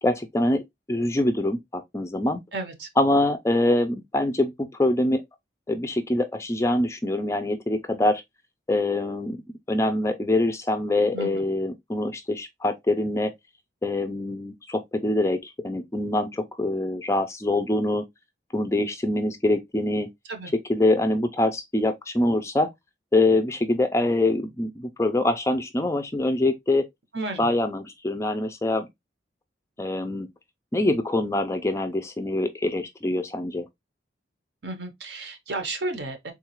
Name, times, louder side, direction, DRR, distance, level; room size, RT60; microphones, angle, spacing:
voice 1, 0.0-2.4 3.0-4.5 4.8-5.2 5.7-8.2 8.7-9.4 9.7-13.3 13.8-18.0 18.5-20.1 20.7-22.7 23.1-26.9 27.4-28.9 29.8-30.3 30.7-33.7, left 1 dB, 15° left, 0.3 m, -24 dB
voice 2, 2.5-2.9 11.1-11.4 20.2-20.5 27.1-27.5 34.6-36.3, right 2 dB, 75° right, 0.8 m, -33 dB
3.7 x 2.3 x 2.9 m
head